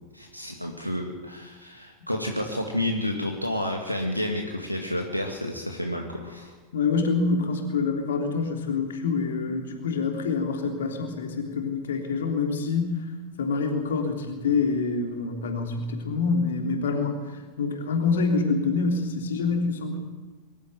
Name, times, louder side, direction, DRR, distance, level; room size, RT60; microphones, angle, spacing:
voice 1, 0.1-6.5, left 1 dB, 90° left, 1 dB, 2.1 m, -30 dB
voice 2, 6.7-13.0 13.4-20.0, left 4 dB, 65° left, 3 dB, 3.4 m, -26 dB
23.0 x 13.5 x 9.5 m, 1.3 s
figure-of-eight pair, 90°, 0 cm